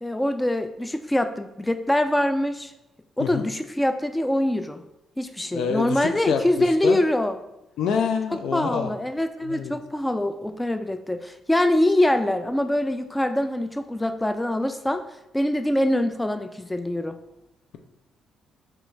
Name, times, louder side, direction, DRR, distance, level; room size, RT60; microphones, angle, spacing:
voice 1, 0.0-2.7 3.2-4.8 5.2-7.4 8.5-15.0 15.3-17.2, left 1 dB, 10° left, 8 dB, 0.3 m, -24 dB
voice 2, 5.5-7.0 7.8-8.9 9.5-9.7, left 6 dB, 80° left, 5 dB, 0.4 m, -26 dB
4.7 x 3.0 x 3.2 m, 0.91 s
cardioid pair, 90°, 0 cm